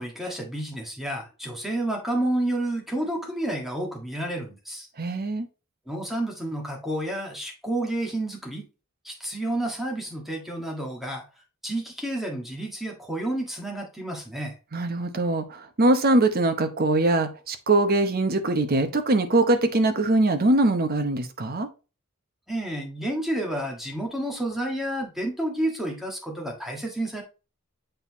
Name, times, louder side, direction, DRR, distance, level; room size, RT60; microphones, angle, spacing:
voice 1, 0.0-4.9 5.9-8.7 9.0-11.2 11.6-14.5 22.5-27.2, right 1 dB, ahead, 1.6 m, -30 dB
voice 2, 5.0-5.5 14.7-21.7, right 2 dB, 45° right, 0.9 m, -22 dB
7.7 x 4.2 x 3.0 m
head